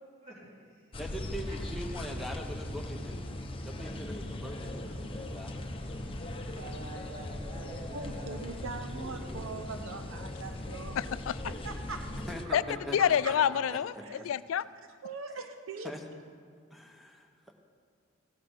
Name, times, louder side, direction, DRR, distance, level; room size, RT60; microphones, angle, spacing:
voice 1, 0.2-1.0 1.5-1.8 4.2-4.3 6.5-8.7 8.9-9.6, right 1 dB, 35° right, 3.5 m, -48 dB
sound 1, 0.9-12.4, left 1 dB, 25° left, 0.8 m, -39 dB
voice 2, 1.0-3.2 3.6-5.5 6.5-6.7 12.3-13.0 13.3-13.4 13.7-13.8 14.2-14.3 15.8-16.0 16.7-17.5, equal, ahead, 1.0 m, -42 dB
voice 3, 7.9-11.0 11.5-12.2 12.5-12.6 13.0-13.1 14.0-14.2 15.0-15.9, right 4 dB, 80° right, 0.7 m, -41 dB
voice 4, 11.0-11.5 12.5-12.6 12.9-14.6, left 9 dB, 80° left, 0.3 m, -28 dB
15.5 x 5.9 x 6.3 m
head